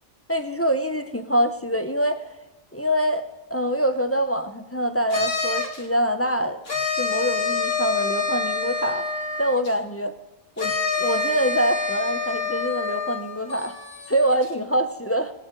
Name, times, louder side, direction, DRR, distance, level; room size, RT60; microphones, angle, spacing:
voice 1, 0.3-2.3 2.7-3.2 3.5-6.6 6.9-9.1 9.4-10.1 10.6-13.7 14.1-15.3, equal, 20° left, 7 dB, 0.5 m, -25 dB
sound 1, 5.1-5.8 6.6-9.7 10.6-14.5, left 4 dB, 55° left, 2.1 m, -27 dB
17.5 x 9.1 x 3.8 m, 1.0 s
omnidirectional pair, 1.3 m